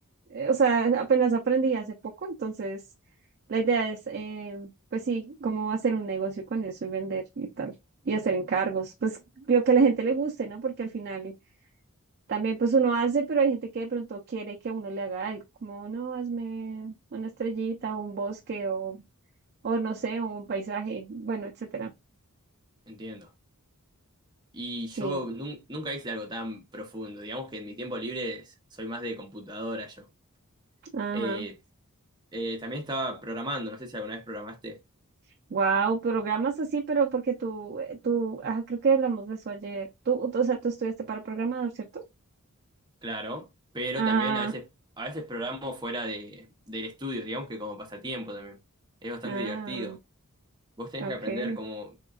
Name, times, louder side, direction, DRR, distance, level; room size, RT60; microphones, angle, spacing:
voice 1, 0.3-1.9 2.2-2.8 3.5-7.7 8.1-11.3 12.3-19.0 19.6-21.9 25.0-25.2 30.9-31.5 35.5-42.0 43.9-44.5 49.2-50.0 51.0-51.6, right 5 dB, 45° right, 0.4 m, -28 dB
voice 2, 22.9-23.3 24.5-30.1 31.1-31.5 32.3-34.8 43.0-43.5 43.7-44.6 45.0-48.6 49.0-50.0 50.8-51.9, equal, 20° right, 0.8 m, -35 dB
3.6 x 2.2 x 2.3 m
head